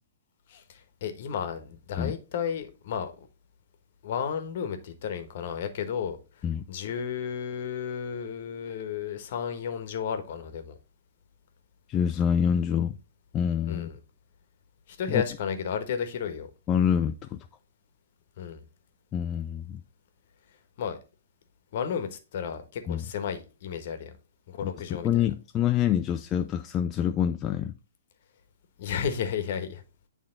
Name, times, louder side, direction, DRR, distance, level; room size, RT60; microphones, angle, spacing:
voice 1, 0.5-3.3 4.0-6.2 6.7-10.7 13.7-14.0 14.9-16.5 18.4-18.6 20.8-21.0 21.7-24.1 24.5-25.3 28.8-29.8, left 7 dB, 50° left, 1.2 m, -33 dB
voice 2, 11.9-13.0 13.3-13.9 15.1-15.2 16.7-17.4 19.1-19.8 22.9-23.0 24.6-27.7, left 9 dB, 25° left, 0.4 m, -26 dB
8.6 x 3.5 x 3.7 m
figure-of-eight pair, 120°, 0 cm